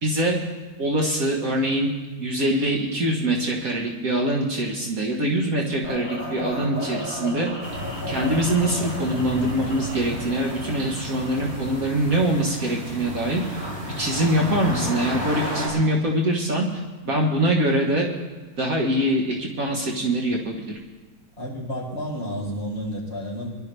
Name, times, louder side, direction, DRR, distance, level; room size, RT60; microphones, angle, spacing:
voice 1, 0.0-0.4 0.8-1.9 2.2-7.5 8.1-13.7 14.0-16.7 17.1-18.1 18.6-20.8, right 1 dB, 60° right, -1 dB, 1.8 m, -23 dB
sound 1, 5.8-11.8, left 1 dB, 35° left, 4.2 m, -35 dB
sound 2, 7.6-15.7, equal, 30° right, 4.9 m, -32 dB
voice 2, 21.4-23.5, equal, 15° left, -5 dB, 4.4 m, -31 dB
23.5 x 11.5 x 3.4 m, 1.3 s
omnidirectional pair, 1.7 m